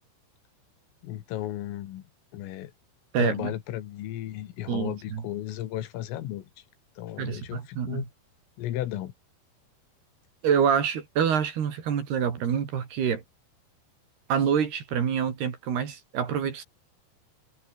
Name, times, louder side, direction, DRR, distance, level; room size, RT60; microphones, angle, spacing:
voice 1, 1.0-2.0 2.3-2.7 3.2-6.5 7.0-8.1 8.6-9.1, left 13 dB, 90° left, 4.5 m, -34 dB
voice 2, 3.1-3.5 4.7-5.2 7.2-8.1 10.4-13.2 14.3-16.6, right 7 dB, 55° right, 4.8 m, -26 dB
omnidirectional pair, 5.7 m